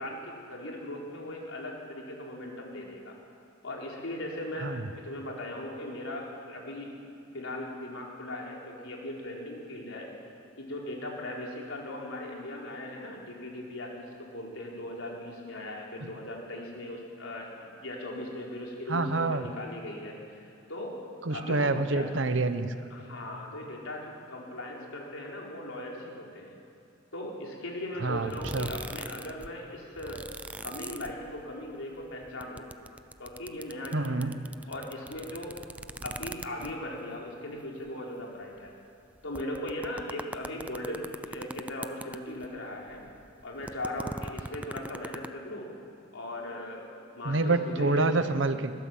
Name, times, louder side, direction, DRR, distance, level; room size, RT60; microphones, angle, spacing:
voice 1, 0.0-3.2 3.6-7.0 7.3-10.1 10.6-20.4 20.7-20.9 21.3-22.1 22.9-26.5 27.1-30.2 30.6-32.7 33.2-34.4 34.7-35.6 36.0-38.7 39.2-43.0 43.4-45.7 46.1-48.2, left 1 dB, 85° left, -2 dB, 4.2 m, -38 dB
voice 2, 18.9-19.5 21.3-22.7 28.0-28.7 33.9-34.3 47.2-48.7, right 3 dB, 65° right, 10 dB, 1.1 m, -27 dB
sound 1, 28.2-29.5 29.8-31.7 32.0-37.0 37.6-37.7 37.9-38.0 38.7-38.8 39.2-42.6 42.9-45.3, right 1 dB, 5° right, 0.4 m, -40 dB
22.0 x 16.0 x 7.4 m, 2.6 s
head